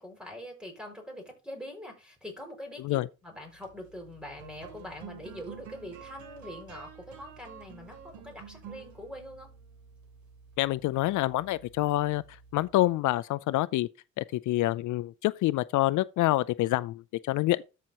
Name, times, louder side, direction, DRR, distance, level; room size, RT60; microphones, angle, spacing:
voice 1, 0.0-9.5, left 1 dB, 5° right, 5.6 m, -43 dB
sound 1, 3.4-13.0, right 6 dB, 70° right, 2.9 m, -50 dB
voice 2, 10.6-12.2 12.5-13.9 14.2-17.6, left 17 dB, 80° left, 0.5 m, -27 dB
13.5 x 5.7 x 2.9 m
cardioid pair, 90°, 30 cm